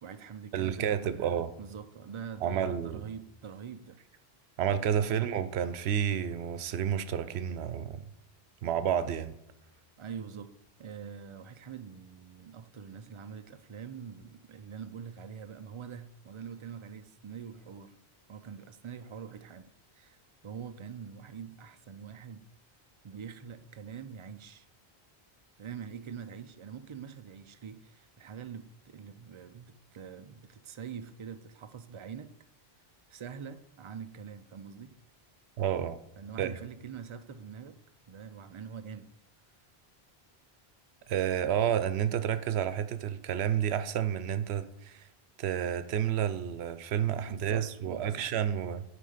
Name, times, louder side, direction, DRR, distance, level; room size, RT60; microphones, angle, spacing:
voice 1, 0.0-4.0 5.1-5.3 10.0-10.5 10.8-18.0 18.3-20.2 20.4-22.5 23.0-24.7 25.6-32.3 33.1-35.0 36.2-37.8 38.1-39.1 47.3-48.3, right 7 dB, 55° right, 0.3 m, -44 dB
voice 2, 0.5-1.5 2.4-3.1 4.6-8.0 8.6-9.3 35.6-36.0 36.4-36.5 41.1-45.0 45.4-48.8, right 9 dB, 85° right, 0.8 m, -30 dB
9.3 x 3.3 x 5.0 m
omnidirectional pair, 1.1 m